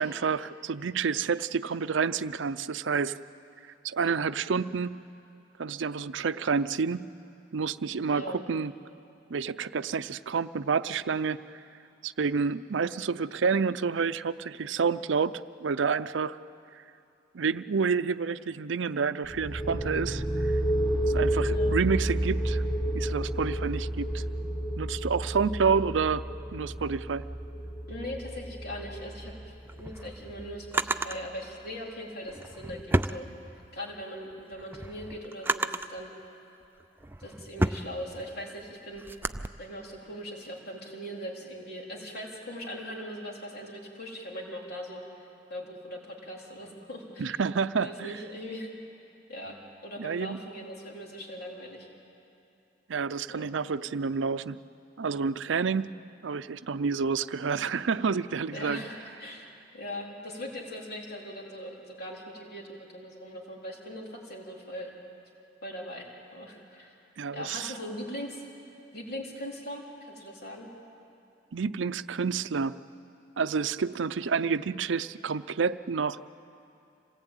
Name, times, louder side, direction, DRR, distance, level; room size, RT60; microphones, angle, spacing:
voice 1, 0.0-3.2 3.8-5.0 5.6-7.1 7.5-8.7 9.3-11.4 12.0-16.4 17.3-20.5 21.1-22.6 22.9-24.2 24.8-26.2 26.5-27.3 47.2-48.2 50.0-50.4 52.9-54.6 55.0-55.9 56.2-58.8 67.2-67.7 71.5-72.7 73.4-76.2, right 5 dB, 85° right, 14 dB, 0.5 m, -29 dB
sound 1, 19.2-30.8, right 1 dB, 25° left, 3.2 m, -31 dB
voice 2, 27.9-33.3 33.7-36.1 37.2-39.0 39.6-45.0 45.5-47.4 47.8-48.7 49.3-51.9 53.3-53.5 55.3-55.4 58.5-59.4 59.7-64.9 65.6-66.9 67.3-68.4 68.9-70.7, equal, 60° left, -1 dB, 3.8 m, -40 dB
Drawer open or close, 29.5-31.2 32.2-33.9 34.3-36.0 36.6-39.5, right 2 dB, 10° right, 0.5 m, -32 dB
26.5 x 18.5 x 9.0 m, 2.7 s
head